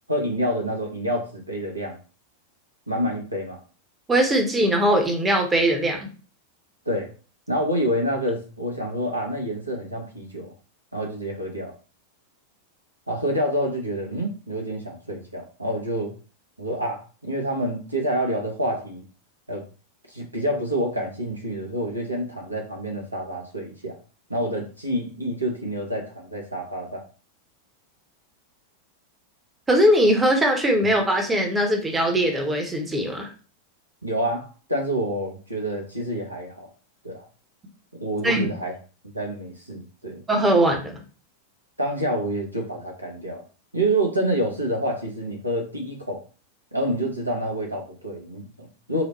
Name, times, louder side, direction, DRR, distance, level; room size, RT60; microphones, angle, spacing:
voice 1, 0.1-2.0 2.9-3.6 6.9-7.1 7.5-10.5 10.9-11.7 13.1-16.1 16.6-19.0 19.5-19.7 20.1-24.0 24.3-27.0 34.0-36.7 37.0-37.3 37.9-38.8 39.1-40.2 41.8-43.4 43.7-46.2 46.7-49.0, right 1 dB, 85° right, 1 dB, 0.8 m, -27 dB
voice 2, 4.1-6.1 29.7-33.3 38.2-38.5 40.3-41.0, right 1 dB, 15° right, 3 dB, 0.8 m, -20 dB
3.9 x 2.1 x 2.9 m, 0.36 s
figure-of-eight pair, 90°, 0 cm